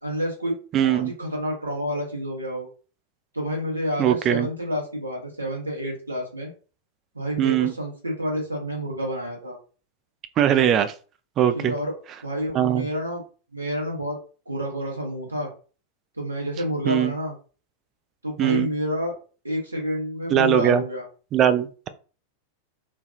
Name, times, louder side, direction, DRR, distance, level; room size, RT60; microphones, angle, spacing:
voice 1, 0.0-2.7 3.3-6.5 7.1-9.6 11.5-11.9 12.2-13.2 13.5-14.2 14.5-15.5 16.2-17.3 18.2-19.1 19.4-21.1, equal, 80° right, 0 dB, 1.0 m, -29 dB
voice 2, 0.7-1.1 4.0-4.5 7.4-7.7 10.4-10.9 11.4-11.7 12.5-12.9 16.9-17.1 18.4-18.7 20.3-20.8 21.3-21.9, right 10 dB, 30° right, 10 dB, 0.3 m, -20 dB
3.2 x 2.3 x 2.5 m, 0.37 s
figure-of-eight pair, 90°, 0 cm